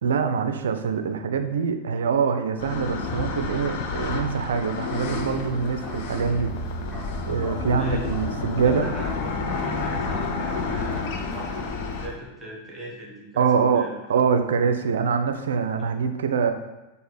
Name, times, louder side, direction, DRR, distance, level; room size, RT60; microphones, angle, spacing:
voice 1, 0.0-6.5 7.3-8.9 13.4-16.5, right 6 dB, 65° right, 7 dB, 0.4 m, -24 dB
sound 1, 2.6-12.1, left 4 dB, 50° left, 0.5 m, -30 dB
Bark, 5.1-12.1, right 1 dB, 5° left, 1.1 m, -39 dB
voice 2, 7.7-8.1 8.6-13.9, right 1 dB, 15° right, -3 dB, 1.1 m, -40 dB
6.4 x 2.4 x 3.2 m, 1.0 s
figure-of-eight pair, 90°, 0 cm